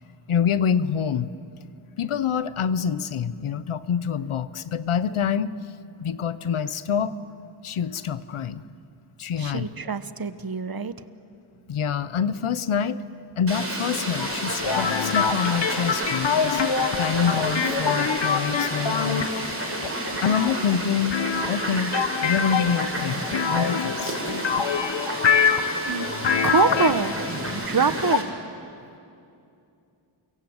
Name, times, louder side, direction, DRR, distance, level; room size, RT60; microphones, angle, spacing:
voice 1, 0.3-1.3 2.0-5.5 6.0-7.1 7.6-8.6 9.2-9.7 11.7-13.0 13.4-16.6 17.0-19.3 20.2-21.1 21.5-21.9 22.2-24.2, left 7 dB, 85° left, 15 dB, 1.0 m, -26 dB
voice 2, 9.4-10.9 25.9-26.1 26.4-27.2 27.5-28.2, right 5 dB, 45° right, 12 dB, 1.2 m, -24 dB
Fowl, 13.5-28.2, right 1 dB, 30° right, 6.3 m, -31 dB
sound 1, 14.2-27.7, left 6 dB, 60° left, 1.4 m, -26 dB
30.0 x 24.5 x 8.0 m, 2.6 s
cardioid pair, 55°, 48 cm